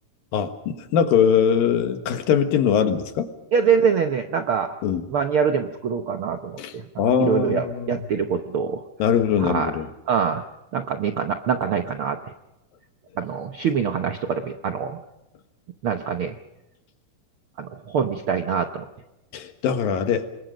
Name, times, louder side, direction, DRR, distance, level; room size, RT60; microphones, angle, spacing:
voice 1, 0.3-3.3 4.8-5.0 6.6-8.0 9.0-9.9 19.3-20.3, left 8 dB, 90° left, 8 dB, 3.3 m, -22 dB
voice 2, 3.5-4.8 5.1-6.8 7.2-8.8 9.4-9.7 10.1-10.4 10.7-12.2 13.2-15.0 15.8-16.4 17.6-18.9, right 6 dB, 75° right, 6 dB, 1.2 m, -24 dB
27.5 x 22.0 x 5.2 m, 0.94 s
omnidirectional pair, 3.9 m